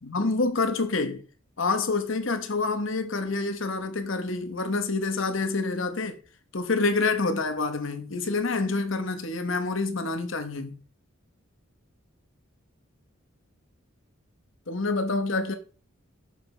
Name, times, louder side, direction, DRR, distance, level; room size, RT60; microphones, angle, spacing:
voice 1, 0.1-1.2 1.6-6.2 6.5-10.8 14.7-15.6, left 3 dB, 65° left, 1.1 m, -27 dB
8.2 x 6.7 x 3.3 m
head